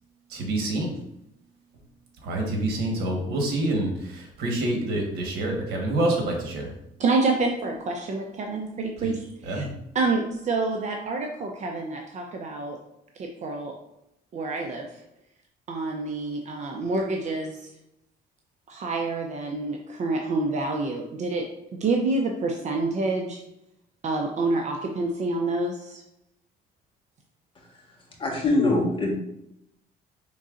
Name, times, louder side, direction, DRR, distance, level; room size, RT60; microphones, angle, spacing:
voice 1, 0.3-0.9 2.2-6.7 9.0-9.1 9.5-9.7, right 1 dB, 70° right, 1 dB, 1.3 m, -27 dB
voice 2, 7.0-9.6 9.9-12.8 13.2-13.7 14.3-15.0 15.7-17.7 18.7-23.4 24.0-26.0, right 3 dB, 45° right, 2 dB, 0.6 m, -28 dB
voice 3, 28.2-29.2, left 2 dB, 30° left, -2 dB, 1.3 m, -23 dB
5.4 x 3.7 x 2.5 m, 0.81 s
cardioid pair, 110°, 17 cm